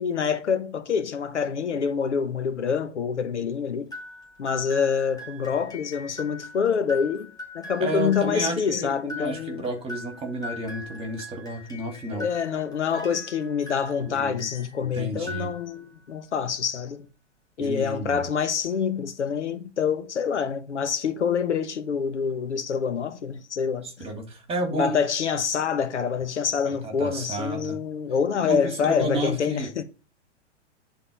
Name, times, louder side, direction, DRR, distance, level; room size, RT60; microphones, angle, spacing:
voice 1, 0.0-3.9 4.4-9.6 12.1-17.1 17.6-23.9 24.7-29.8, left 6 dB, 70° left, 1.1 m, -26 dB
sound 1, 3.9-14.8 15.1-16.0, left 2 dB, 10° left, 2.7 m, -41 dB
voice 2, 7.8-12.3 14.0-14.5 14.9-15.5 17.6-18.3 23.8-25.0 26.6-27.8 28.4-28.6 28.8-29.7, right 1 dB, 15° right, 2.6 m, -31 dB
9.9 x 4.1 x 5.4 m
figure-of-eight pair, 110°, 36 cm